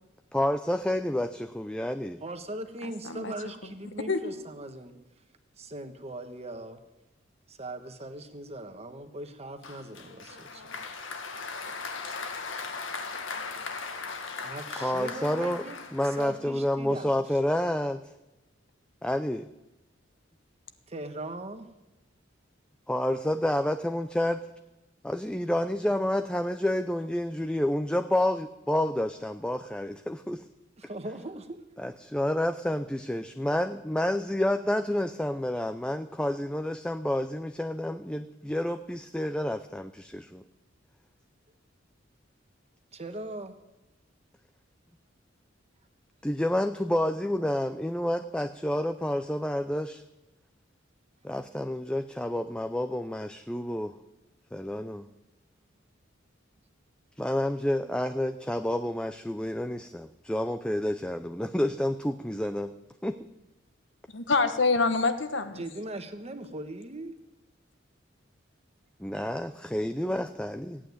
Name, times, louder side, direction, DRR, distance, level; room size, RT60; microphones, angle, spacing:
voice 1, 0.3-2.2 14.8-15.6 15.9-18.0 19.0-19.5 22.9-24.4 25.0-30.4 31.8-40.4 46.2-50.0 51.2-53.9 54.5-55.1 57.2-62.7 63.0-63.2 69.0-70.8, left 1 dB, 5° left, 8 dB, 0.5 m, -29 dB
voice 2, 2.2-5.0 5.6-6.8 7.5-10.7 14.4-17.4 20.9-21.7 30.8-31.6 42.9-43.5 65.5-67.2, right 1 dB, 35° right, 7 dB, 1.4 m, -40 dB
Applause, 9.6-16.7, left 4 dB, 85° left, 1.7 m, -38 dB
voice 3, 64.1-65.6, left 3 dB, 65° left, 9 dB, 1.2 m, -26 dB
16.0 x 9.0 x 9.5 m, 1.0 s
head